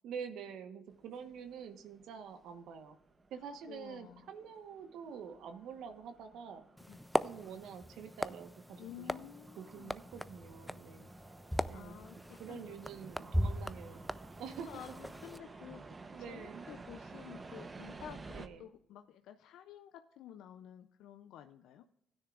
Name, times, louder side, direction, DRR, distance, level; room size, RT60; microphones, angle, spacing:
voice 1, 0.0-3.0 3.3-6.6 7.2-9.3 9.6-11.1 11.7-12.0 12.4-14.0 14.4-14.7 16.1-16.6 18.3-18.7, right 7 dB, 85° right, 8 dB, 1.1 m, -47 dB
sound 1, 0.9-18.5, right 3 dB, 30° right, 0.8 m, -54 dB
voice 2, 3.7-4.2 6.9-7.0 8.8-9.9 11.5-12.8 14.7-15.8 16.2-21.9, left 10 dB, 85° left, 8 dB, 0.4 m, -52 dB
sound 2, 6.8-15.4, equal, ahead, 0.4 m, -39 dB
15.5 x 9.9 x 2.4 m, 0.81 s
cardioid pair, 90°, 0 cm